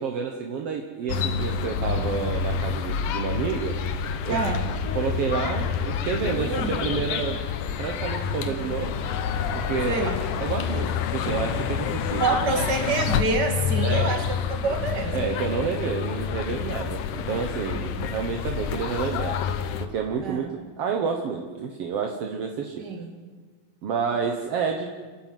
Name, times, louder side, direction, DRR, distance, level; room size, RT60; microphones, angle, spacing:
voice 1, 0.0-3.8 4.2-4.4 4.9-7.4 7.8-9.0 9.5-10.1 10.4-12.5 13.8-14.0 15.1-19.4 19.8-20.5 20.8-22.8 23.8-24.9, right 6 dB, 60° right, 2 dB, 1.6 m, -29 dB
sound 1, 1.1-19.9, left 7 dB, 70° left, 2.4 m, -28 dB
voice 2, 4.3-4.7 6.4-6.7 8.5-8.7 9.9-10.1 12.2-14.2 14.5-15.2 17.7-18.1 20.2-20.5 22.8-23.1, right 4 dB, 35° right, 5 dB, 2.3 m, -27 dB
29.0 x 11.5 x 9.3 m, 1.4 s
omnidirectional pair, 4.2 m